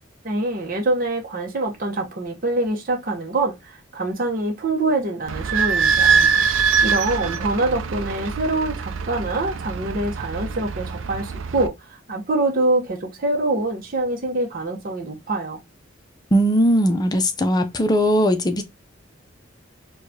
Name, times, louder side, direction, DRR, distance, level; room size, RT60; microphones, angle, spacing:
voice 1, 0.2-15.6, right 2 dB, 45° right, 0.9 m, -25 dB
Idling / Squeak, 5.3-11.7, right 6 dB, 80° right, 0.5 m, -23 dB
voice 2, 16.3-18.6, equal, 20° left, 0.6 m, -19 dB
4.7 x 2.3 x 2.7 m
head